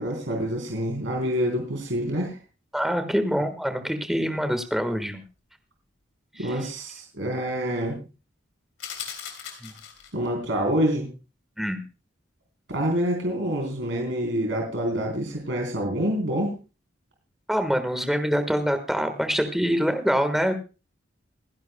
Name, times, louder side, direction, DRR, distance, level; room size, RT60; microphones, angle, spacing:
voice 1, 0.0-2.4 6.4-8.0 10.1-11.1 12.7-16.5, equal, 75° right, 1 dB, 3.8 m, -27 dB
voice 2, 2.7-5.2 6.3-6.5 9.6-9.7 11.6-11.8 17.5-20.5, equal, ahead, 7 dB, 1.4 m, -25 dB
sound 1, 8.8-10.3, left 8 dB, 85° left, 3.4 m, -38 dB
27.5 x 10.5 x 2.2 m, 0.32 s
head